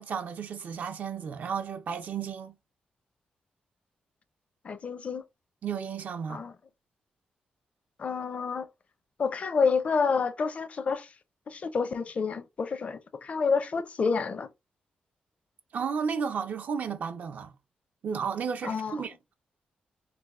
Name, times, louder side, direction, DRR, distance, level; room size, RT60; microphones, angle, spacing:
voice 1, 0.0-2.5 5.6-6.4 15.7-17.5 18.0-19.3, right 6 dB, 65° right, 0.5 m, -33 dB
voice 2, 4.6-5.2 6.3-6.5 8.0-8.7 9.2-11.1 11.5-14.5 18.6-19.0, left 5 dB, 45° left, 0.5 m, -29 dB
3.3 x 2.0 x 3.5 m
cardioid pair, 85°, 3 cm